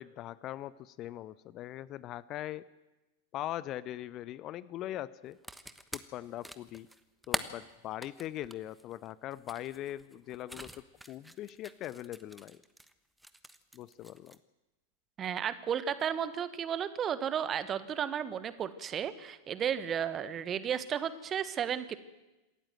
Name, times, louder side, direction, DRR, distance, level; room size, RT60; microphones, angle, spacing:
voice 1, 0.0-2.6 3.3-5.4 5.9-6.9 7.3-10.7 11.1-12.6 13.7-14.4, left 13 dB, 35° left, 19 dB, 0.6 m, -41 dB
sound 1, 5.3-12.9 13.2-14.4, right 1 dB, ahead, 1.1 m, -43 dB
voice 2, 15.2-22.0, right 8 dB, 25° right, 14 dB, 1.4 m, -33 dB
27.0 x 14.0 x 7.7 m, 1.1 s
figure-of-eight pair, 90°, 0 cm